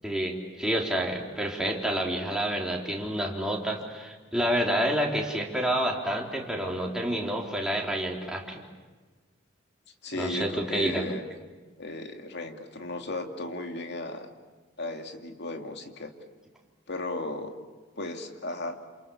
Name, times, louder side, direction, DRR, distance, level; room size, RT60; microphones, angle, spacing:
voice 1, 0.0-8.6 10.1-11.1, right 1 dB, 5° right, -1 dB, 3.6 m, -29 dB
voice 2, 10.0-11.2 11.8-14.3 14.8-16.1 16.9-17.5 18.0-18.8, left 2 dB, 65° left, 4 dB, 2.5 m, -35 dB
28.5 x 28.0 x 7.1 m, 1.3 s
head